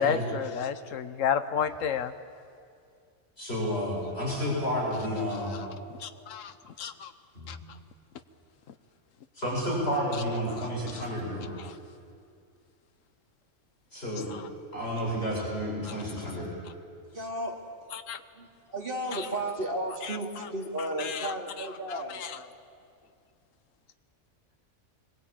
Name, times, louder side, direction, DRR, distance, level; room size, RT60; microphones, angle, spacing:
voice 1, 0.0-2.1 5.6-5.7 6.0-7.1 7.5-7.6 10.5-10.7 11.6-11.7 14.3-14.5 15.8-16.0 17.9-18.2 19.1-19.2 20.1-20.2 21.0-21.3 21.9-22.4, left 7 dB, 85° left, 10 dB, 1.3 m, -32 dB
voice 2, 3.4-5.6 7.3-7.5 9.4-11.5 13.9-14.3 14.7-16.5, equal, 50° left, -5 dB, 7.6 m, -31 dB
voice 3, 17.0-17.5 18.3-22.2, right 1 dB, 45° right, 0 dB, 2.9 m, -34 dB
24.5 x 21.0 x 8.8 m, 2.3 s
omnidirectional pair, 1.3 m